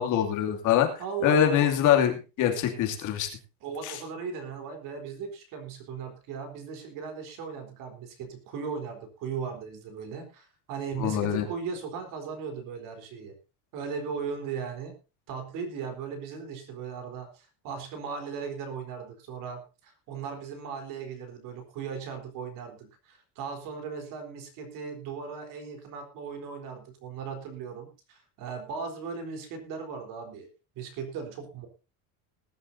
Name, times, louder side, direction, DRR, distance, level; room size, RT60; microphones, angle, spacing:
voice 1, 0.0-0.9 1.2-3.3 3.8-4.0 11.0-11.5, left 10 dB, 40° left, 3 dB, 2.7 m, -24 dB
voice 2, 1.0-1.7 3.6-13.3 13.7-14.9 15.3-30.5 30.8-31.7, right 6 dB, 45° right, 6 dB, 4.0 m, -37 dB
20.5 x 11.5 x 2.7 m, 0.30 s
cardioid pair, 175°, 44 cm